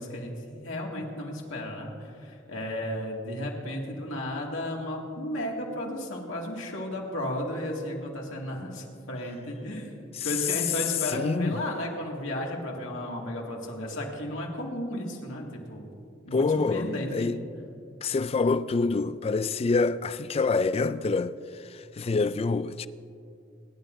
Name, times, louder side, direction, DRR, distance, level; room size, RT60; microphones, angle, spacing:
voice 1, 0.0-9.9 10.2-15.9 16.2-17.3, left 1 dB, 85° left, 2.1 m, -34 dB
voice 2, 11.1-11.6 16.3-17.4 18.0-22.9, left 4 dB, 30° left, 0.3 m, -27 dB
26.5 x 11.0 x 2.6 m
head